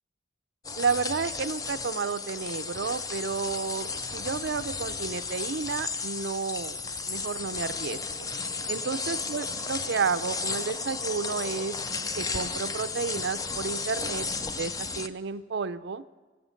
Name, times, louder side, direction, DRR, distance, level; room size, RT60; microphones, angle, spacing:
sound 1, 0.6-15.1, left 4 dB, 20° left, 0.4 m, -34 dB
voice 1, 0.8-6.8 7.1-8.3 8.7-11.8 12.2-14.3 14.6-16.0, right 5 dB, 60° right, 15 dB, 0.5 m, -31 dB
20.0 x 8.1 x 6.5 m, 1.4 s
head